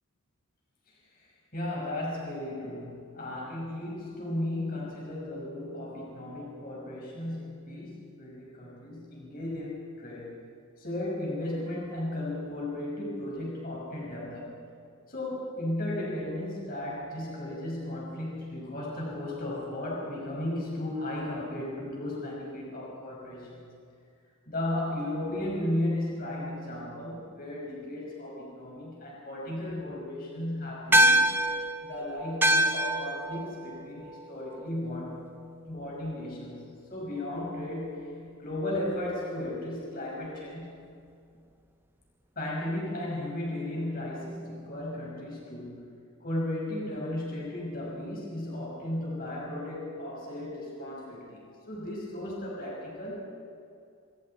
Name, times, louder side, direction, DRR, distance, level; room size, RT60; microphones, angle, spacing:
voice 1, 0.9-10.4 10.8-14.6 15.1-23.6 24.5-31.3 31.8-35.4 35.6-40.9 42.4-45.9 46.2-53.3, left 1 dB, 40° left, -4 dB, 5.8 m, -35 dB
sound 1, 30.9-35.6, right 1 dB, 10° right, 0.8 m, -26 dB
27.0 x 26.0 x 4.5 m, 2.4 s
head